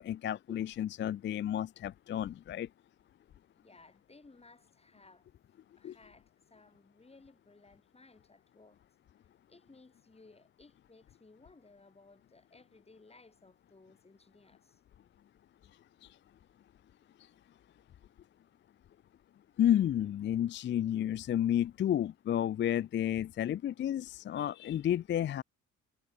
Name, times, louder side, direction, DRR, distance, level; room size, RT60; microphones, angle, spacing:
voice 1, 0.0-2.7 5.8-6.0 16.0-16.1 19.6-25.4, left 11 dB, 40° left, 0.4 m, -31 dB
voice 2, 3.5-5.3 5.8-8.8 9.5-14.8, left 3 dB, 20° left, 6.2 m, -59 dB
cardioid pair, 90°, 30 cm